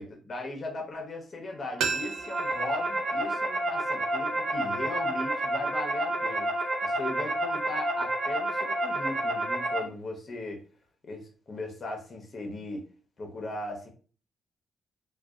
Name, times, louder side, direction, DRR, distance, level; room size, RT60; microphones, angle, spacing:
voice 1, 0.0-6.5 6.8-10.6 11.0-12.8 13.2-13.9, left 2 dB, 35° left, 2 dB, 0.7 m, -38 dB
sound 1, 1.8-4.6 4.9-5.0, right 5 dB, 90° right, 0.4 m, -36 dB
sound 2, 2.0-9.8, right 1 dB, 50° right, 0.6 m, -29 dB
2.5 x 2.2 x 2.3 m, 0.38 s
cardioid pair, 115°, 0 cm